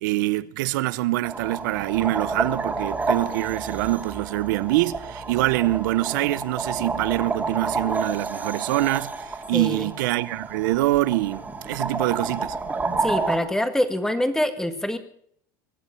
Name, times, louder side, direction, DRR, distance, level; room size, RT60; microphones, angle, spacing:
voice 1, 0.0-12.6, right 17 dB, 80° right, 0.8 m, -25 dB
sound 1, 1.2-13.4, right 3 dB, 15° right, 2.5 m, -30 dB
voice 2, 9.5-9.9 13.0-15.0, left 1 dB, 5° left, 1.7 m, -25 dB
23.0 x 8.4 x 7.0 m
supercardioid pair, 115°, 10 cm